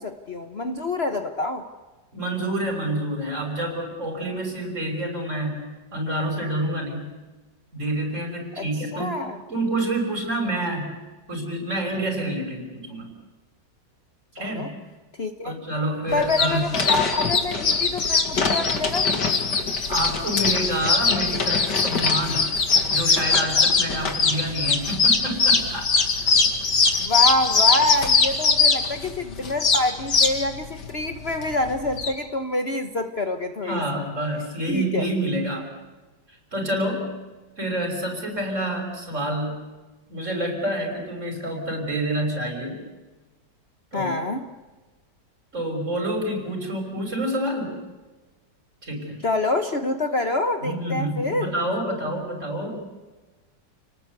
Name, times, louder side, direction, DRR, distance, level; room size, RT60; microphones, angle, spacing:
voice 1, 0.0-1.7 8.6-8.7 8.9-9.4 14.4-14.7 15.2-15.5 16.1-19.1 27.0-33.8 34.7-35.0 43.9-44.5 49.2-51.5, left 2 dB, 40° left, 6 dB, 1.3 m, -26 dB
voice 2, 2.1-5.6 5.9-7.1 7.7-9.2 9.5-11.0 11.3-13.1 14.3-14.7 15.4-16.6 19.9-22.5 22.9-25.9 33.6-35.7 36.3-37.1 37.6-39.6 40.1-42.8 43.9-44.2 45.5-47.8 48.8-49.2 50.6-52.7, right 1 dB, 40° right, 3 dB, 6.4 m, -28 dB
sound 1, 16.1-32.1, left 4 dB, 70° left, 2.8 m, -21 dB
29.5 x 19.5 x 8.2 m, 1.2 s
omnidirectional pair, 1.9 m